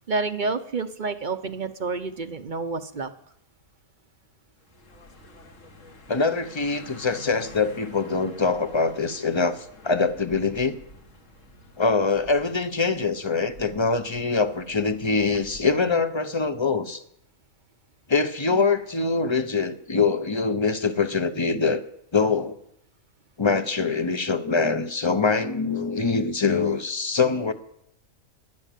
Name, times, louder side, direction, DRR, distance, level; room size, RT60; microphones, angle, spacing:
voice 1, 0.1-3.1, right 4 dB, 40° right, 10 dB, 0.8 m, -29 dB
sound 1, 4.6-16.0, left 2 dB, 65° left, 2.2 m, -48 dB
voice 2, 6.1-10.8 11.8-17.0 18.1-21.8 22.1-22.6 23.4-27.5, left 4 dB, 25° left, 10 dB, 0.7 m, -24 dB
12.0 x 11.5 x 9.1 m, 0.76 s
omnidirectional pair, 1.4 m